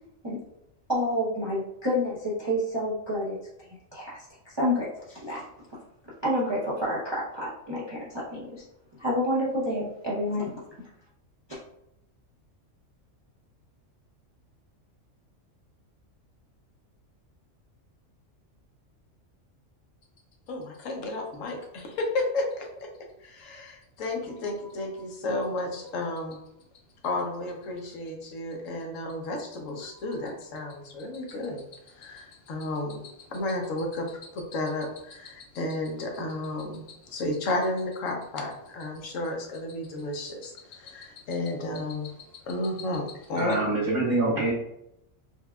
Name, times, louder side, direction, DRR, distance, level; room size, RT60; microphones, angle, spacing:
voice 1, 0.9-3.4 3.9-5.4 6.2-8.6 9.0-10.5 11.5-11.6, equal, 30° right, -7 dB, 0.5 m, -29 dB
voice 2, 20.5-22.9 23.2-26.4 27.0-42.1 42.5-43.6, left 2 dB, 80° left, 1 dB, 1.1 m, -32 dB
voice 3, 43.4-44.5, right 2 dB, 45° right, -9 dB, 1.3 m, -25 dB
4.3 x 2.3 x 2.2 m, 0.81 s
omnidirectional pair, 1.3 m